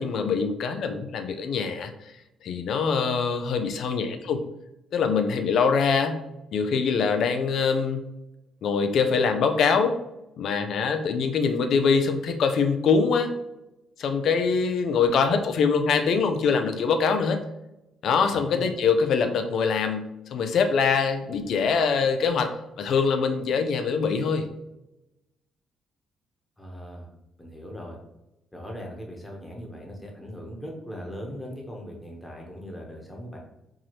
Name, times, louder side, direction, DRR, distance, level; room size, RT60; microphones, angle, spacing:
voice 1, 0.0-1.9 2.4-4.4 4.9-6.2 6.5-8.0 8.6-10.0 10.4-13.3 14.0-17.4 18.0-22.5 22.8-24.5, left 5 dB, 70° left, 7 dB, 0.5 m, -23 dB
voice 2, 18.3-18.7 26.6-27.1 27.4-28.0 28.5-33.4, equal, 10° left, -1 dB, 1.2 m, -39 dB
4.7 x 2.7 x 3.1 m, 0.91 s
cardioid pair, 90°, 0 cm